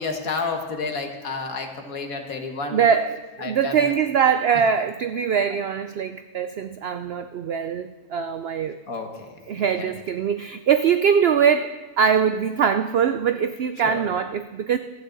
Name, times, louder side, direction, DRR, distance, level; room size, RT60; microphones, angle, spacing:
voice 1, 0.0-2.8 3.4-3.9 4.5-4.6 5.5-5.6 8.9-9.9 13.8-14.1, left 4 dB, 65° left, 4 dB, 1.8 m, -31 dB
voice 2, 2.7-8.8 9.5-14.8, right 7 dB, 85° right, 9 dB, 0.5 m, -22 dB
26.5 x 9.0 x 3.9 m, 1.3 s
omnidirectional pair, 1.6 m